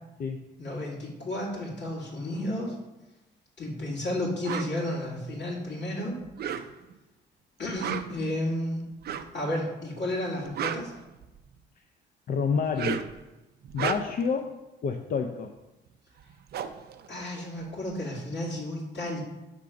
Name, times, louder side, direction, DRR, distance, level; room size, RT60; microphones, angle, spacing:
voice 1, 0.6-2.7 3.6-6.2 7.6-8.8 9.3-10.9 17.1-19.2, left 1 dB, 65° left, -4 dB, 2.2 m, -32 dB
sound 1, 4.4-4.7 6.2-7.0 7.7-8.3 9.0-9.4 10.3-11.6 12.6-13.2 13.6-14.3 15.9-16.0 16.2-17.9, right 8 dB, 55° right, 0.4 m, -34 dB
voice 2, 12.3-13.1 13.7-15.5, left 5 dB, 45° left, 4 dB, 0.4 m, -29 dB
5.8 x 3.7 x 5.0 m, 1.0 s
cardioid pair, 90°, 20 cm